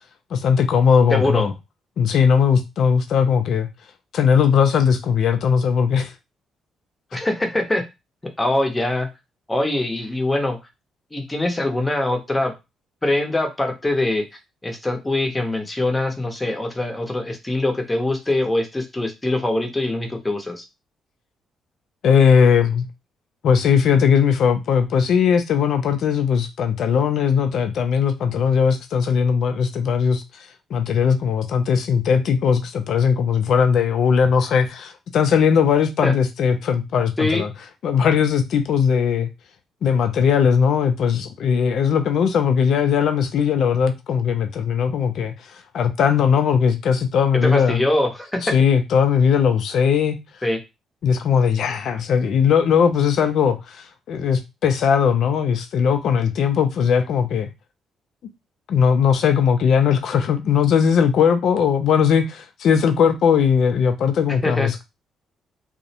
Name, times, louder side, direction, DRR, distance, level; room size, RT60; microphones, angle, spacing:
voice 1, 0.3-1.5 2.0-3.7 4.1-6.1 22.0-22.9 23.4-30.2 30.7-37.5 37.8-39.3 39.8-45.3 45.7-47.8 48.4-50.2 51.0-57.5 58.7-64.8, left 7 dB, 70° left, 0.4 m, -19 dB
voice 2, 1.1-1.5 7.1-7.8 8.4-9.1 9.5-10.6 11.1-12.5 13.0-14.2 14.6-20.6 36.0-36.2 37.2-37.4 47.3-48.5 50.4-50.6 64.4-64.7, left 1 dB, 15° left, 0.7 m, -23 dB
2.4 x 2.0 x 2.7 m
cardioid pair, 90°, 0 cm